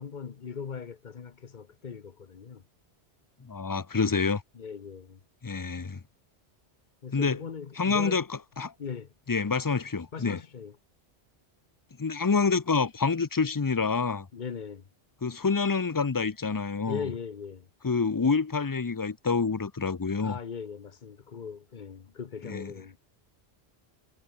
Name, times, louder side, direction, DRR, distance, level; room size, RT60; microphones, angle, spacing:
voice 1, 0.0-2.6 4.5-5.2 7.0-8.2 8.8-9.1 10.1-10.8 14.3-14.8 16.9-17.7 20.2-23.0, left 6 dB, 45° left, 1.0 m, -39 dB
voice 2, 3.4-4.4 5.4-6.0 7.1-7.4 7.8-8.7 9.3-10.4 12.0-14.3 15.2-17.0 17.8-20.4 22.4-22.7, left 4 dB, 25° left, 0.5 m, -27 dB
omnidirectional pair, 1.1 m